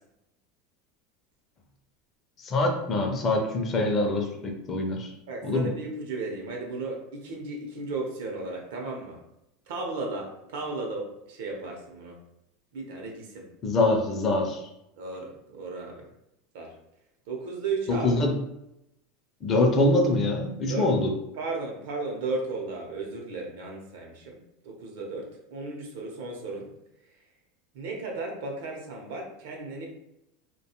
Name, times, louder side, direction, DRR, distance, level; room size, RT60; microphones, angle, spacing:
voice 1, 2.4-5.1 5.4-5.7 13.6-14.6 17.9-18.3 19.4-21.1, left 2 dB, 25° left, 2 dB, 0.4 m, -24 dB
voice 2, 5.3-9.2 9.7-12.2 12.7-13.5 15.0-16.1 16.5-16.7 17.3-18.2 20.7-20.9 21.4-24.4 24.6-26.7 27.7-29.9, right 3 dB, 75° right, 0 dB, 0.7 m, -35 dB
2.4 x 2.2 x 2.8 m, 0.86 s
supercardioid pair, 150°, 0 cm